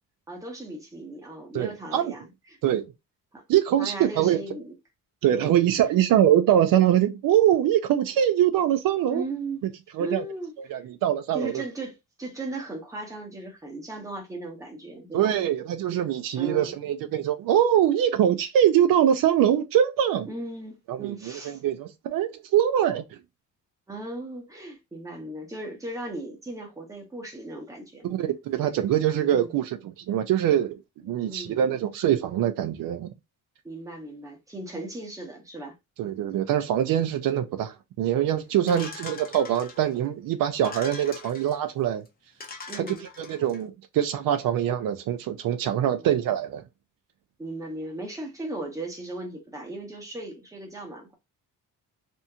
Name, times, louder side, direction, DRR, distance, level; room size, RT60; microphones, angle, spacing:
voice 1, 0.3-2.3 3.3-3.4 3.8-4.7 5.3-5.9 9.1-9.7 10.0-10.8 11.3-15.4 16.4-16.7 20.3-21.6 23.9-28.1 29.2-29.6 31.2-31.7 33.6-35.7 38.6-38.9 42.7-43.0 46.0-46.1 47.4-51.1, right 2 dB, 10° right, 0.8 m, -37 dB
voice 2, 1.5-2.1 2.6-2.9 3.5-4.4 5.2-9.3 9.9-10.2 10.7-11.6 15.1-20.3 20.9-23.0 28.1-33.1 36.0-42.0 43.3-46.6, right 10 dB, 75° right, 0.5 m, -23 dB
sound 1, 38.7-40.0 40.5-41.6 42.1-42.2 42.4-43.6, left 4 dB, 25° left, 0.6 m, -41 dB
2.8 x 2.6 x 2.2 m
cardioid pair, 165°, 34 cm